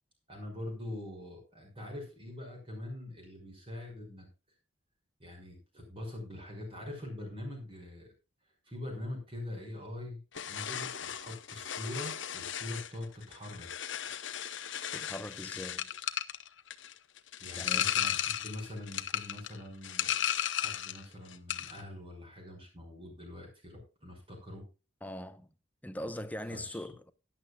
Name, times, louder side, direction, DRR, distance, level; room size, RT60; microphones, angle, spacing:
voice 1, 0.3-4.3 5.2-8.1 8.7-10.2 10.5-13.7 17.4-20.0 20.5-24.6 26.5-26.9, left 1 dB, 25° right, 5.6 m, -43 dB
sound 1, 10.3-21.1 21.3-21.8, left 10 dB, 65° left, 1.0 m, -35 dB
voice 2, 14.9-15.9 17.6-17.9 25.0-25.5 25.8-27.1, left 1 dB, 10° left, 0.8 m, -41 dB
17.5 x 10.5 x 2.3 m
head